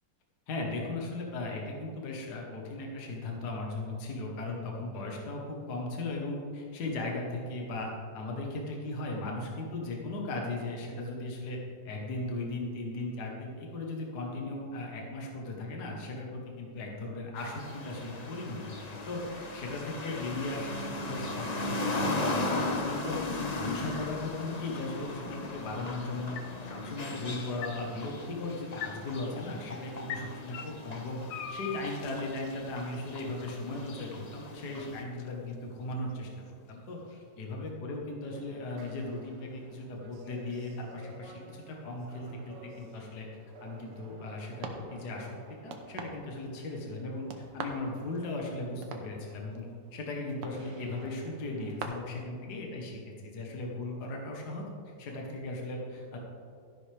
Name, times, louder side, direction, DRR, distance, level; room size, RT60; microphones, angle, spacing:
voice 1, 0.5-11.6 11.9-26.4 26.6-36.3 36.7-43.3 43.6-45.3 45.6-56.2, left 2 dB, 60° left, -1 dB, 1.9 m, -37 dB
sound 1, 17.4-35.0, left 2 dB, 40° left, 0.6 m, -37 dB
sound 2, 21.4-37.4, left 8 dB, 80° left, 1.4 m, -48 dB
sound 3, 38.2-51.8, right 4 dB, 75° right, 1.6 m, -47 dB
13.0 x 11.5 x 3.4 m, 2.4 s
omnidirectional pair, 2.0 m